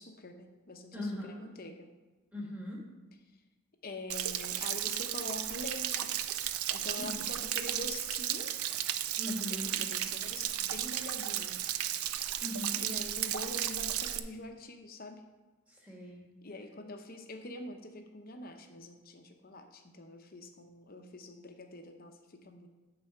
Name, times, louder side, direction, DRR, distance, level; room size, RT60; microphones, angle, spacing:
voice 1, 0.0-1.9 3.8-6.1 6.7-8.6 9.2-11.6 12.8-15.2 16.4-22.7, left 2 dB, 40° left, 5 dB, 0.8 m, -45 dB
voice 2, 0.9-1.4 2.3-2.8 7.0-7.2 9.2-9.8 12.4-12.8 15.7-16.3, left 1 dB, 5° right, -4 dB, 1.7 m, -40 dB
Stream / Splash splatter / Trickle dribble, 4.1-14.2, right 11 dB, 80° right, 0.4 m, -34 dB
9.2 x 4.1 x 6.6 m, 1.2 s
head